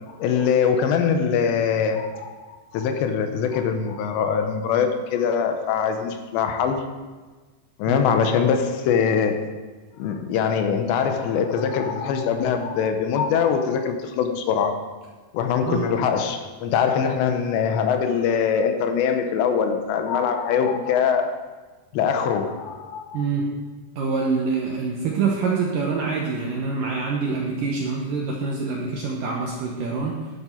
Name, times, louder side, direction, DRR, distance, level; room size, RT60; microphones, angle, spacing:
voice 1, 0.2-6.9 7.8-9.4 10.0-14.8 15.3-21.4 21.9-23.2, left 7 dB, 80° left, 6 dB, 3.0 m, -23 dB
voice 2, 23.1-23.5 24.0-30.2, right 4 dB, 75° right, -1 dB, 2.0 m, -25 dB
11.0 x 11.0 x 4.5 m, 1.3 s
omnidirectional pair, 5.1 m